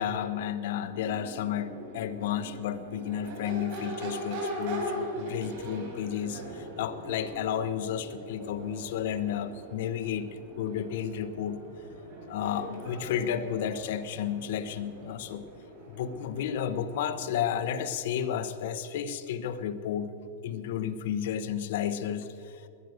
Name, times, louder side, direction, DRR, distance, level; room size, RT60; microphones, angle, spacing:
voice 1, 0.0-10.3 10.6-11.6 12.3-15.4 15.9-20.1 20.4-22.6, left 9 dB, 60° left, 10 dB, 1.0 m, -32 dB
Crowd / Race car auto racing / Accelerating revving vroom, 0.8-17.9, right 1 dB, 50° right, 5.0 m, -41 dB
21.5 x 9.3 x 6.6 m, 2.5 s
supercardioid pair, 165°, 0 cm